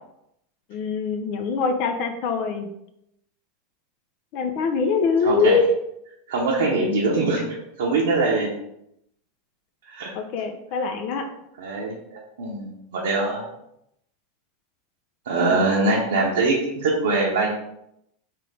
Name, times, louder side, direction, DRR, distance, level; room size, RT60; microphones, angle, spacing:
voice 1, 0.7-2.7 4.3-5.6 10.2-11.3 15.4-15.6, left 5 dB, 55° left, 5 dB, 0.6 m, -23 dB
voice 2, 5.2-5.6 6.3-7.4 7.8-8.6 9.9-10.1 11.6-13.4 15.3-17.5, right 3 dB, 75° right, -3 dB, 0.8 m, -23 dB
3.5 x 3.4 x 3.3 m, 0.79 s
hypercardioid pair, 100°, 0 cm